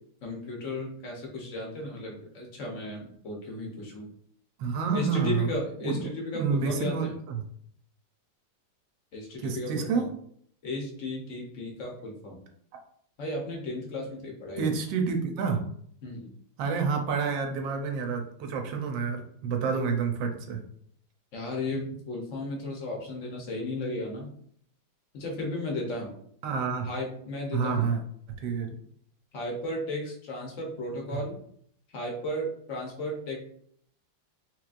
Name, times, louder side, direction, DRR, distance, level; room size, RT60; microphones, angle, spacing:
voice 1, 0.2-4.0 4.9-7.1 9.1-10.1 10.6-12.4 13.2-14.8 16.0-16.3 21.3-24.3 25.1-26.1 26.8-27.9 29.3-31.4 31.9-33.4, left 1 dB, 55° left, 0 dB, 0.9 m, -34 dB
voice 2, 4.6-5.5 5.8-6.1 6.3-7.5 9.4-10.1 14.6-15.6 16.6-20.6 26.4-26.9 27.5-28.0 28.4-28.7 31.1-31.2, right 5 dB, 75° right, 3 dB, 1.3 m, -28 dB
3.9 x 3.1 x 2.4 m, 0.65 s
omnidirectional pair, 2.1 m